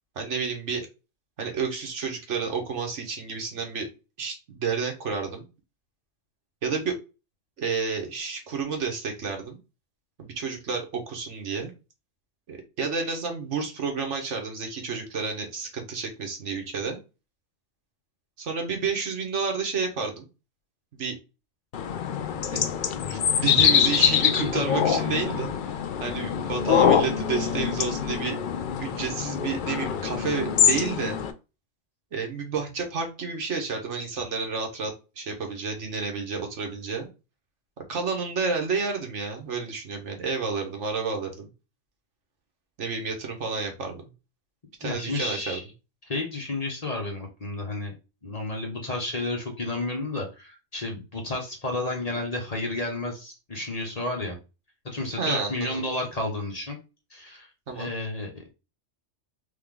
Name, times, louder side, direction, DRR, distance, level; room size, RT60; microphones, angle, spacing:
voice 1, 0.2-0.9 1.4-3.9 4.2-5.4 6.6-7.0 7.6-9.6 10.2-11.7 12.5-17.0 18.4-20.3 20.9-21.2 22.5-22.6 23.1-25.5 26.0-28.4 28.8-31.2 32.1-37.1 37.9-41.5 42.8-44.0 44.8-45.6 55.2-55.8 57.7-57.9, right 5 dB, 70° right, 3 dB, 1.4 m, -30 dB
sound 1, 21.7-31.3, left 8 dB, 60° left, 0.5 m, -24 dB
voice 2, 24.4-25.0 44.8-45.6 46.1-47.9 48.2-54.4 54.8-56.8 57.1-58.5, left 2 dB, 30° left, 1 dB, 1.1 m, -31 dB
3.7 x 3.4 x 3.7 m, 0.29 s
omnidirectional pair, 1.3 m